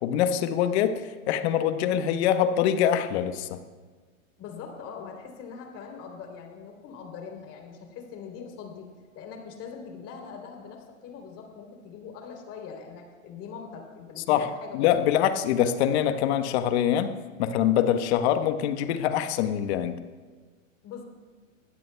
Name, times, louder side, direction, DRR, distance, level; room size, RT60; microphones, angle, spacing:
voice 1, 0.0-3.6 14.3-14.5 14.7-17.1 17.4-20.0, left 10 dB, 55° left, 9 dB, 1.2 m, -24 dB
voice 2, 4.4-8.9 9.1-15.1 20.8-21.0, left 6 dB, 35° left, 2 dB, 3.4 m, -42 dB
21.5 x 16.5 x 2.3 m, 1.4 s
hypercardioid pair, 110°, 40 cm